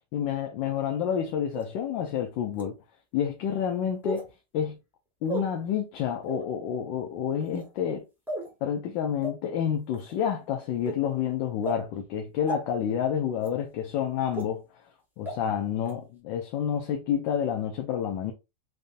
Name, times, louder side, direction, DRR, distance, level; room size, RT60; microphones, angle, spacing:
voice 1, 0.1-2.8 3.1-4.3 4.5-4.8 5.2-8.0 8.6-14.6 15.2-18.3, left 8 dB, 85° left, 1.4 m, -29 dB
sound 1, 1.5-1.6 2.5-2.6 4.0-4.3 5.3-5.4 6.2-6.5 7.4-7.7 8.3-8.5 9.2-9.3 9.9-10.1 10.9-11.0 11.6-11.8 12.5-12.6 13.4-13.5 14.3-14.4 15.3-15.4 15.9-16.0, right 1 dB, ahead, 1.1 m, -33 dB
4.0 x 3.3 x 2.6 m
omnidirectional pair, 2.0 m